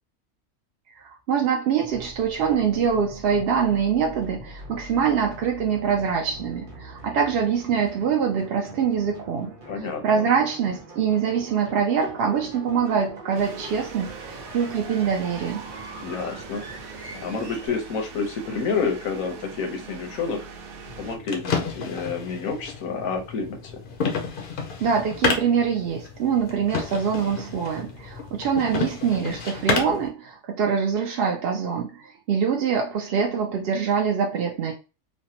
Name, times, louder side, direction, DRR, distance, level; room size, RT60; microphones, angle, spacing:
voice 1, 1.0-9.6 10.0-15.6 24.8-34.7, right 7 dB, 65° right, 1 dB, 0.6 m, -24 dB
sound 1, 1.8-17.7, right 1 dB, 30° right, 0.9 m, -43 dB
voice 2, 9.7-10.3 16.0-16.7 17.1-20.5 21.0-23.8, left 5 dB, 85° left, 4 dB, 1.2 m, -29 dB
sound 2, 13.3-21.2, right 5 dB, 90° right, 1.1 m, -42 dB
sound 3, 20.9-30.1, left 5 dB, 55° left, 0.6 m, -30 dB
3.2 x 2.1 x 2.7 m, 0.30 s
omnidirectional pair, 1.4 m